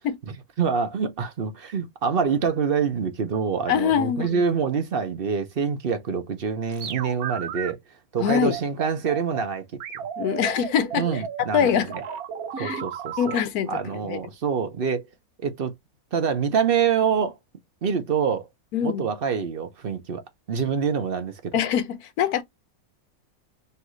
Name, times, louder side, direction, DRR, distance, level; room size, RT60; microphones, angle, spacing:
voice 1, 0.3-7.8 8.1-9.7 11.0-12.0 12.6-13.4 13.7-15.1 15.4-15.7 16.1-17.4 17.8-18.5 18.8-20.2 20.5-21.6, right 6 dB, 45° right, 1.0 m, -26 dB
voice 2, 3.7-4.4 8.2-8.5 10.2-11.1 11.4-11.9 12.6-12.8 13.2-14.2 18.7-19.1 21.5-22.4, left 8 dB, 80° left, 1.2 m, -24 dB
sound 1, 6.7-7.7 8.3-9.4 9.8-13.4, right 8 dB, 75° right, 1.3 m, -34 dB
5.5 x 2.6 x 3.1 m
omnidirectional pair, 1.6 m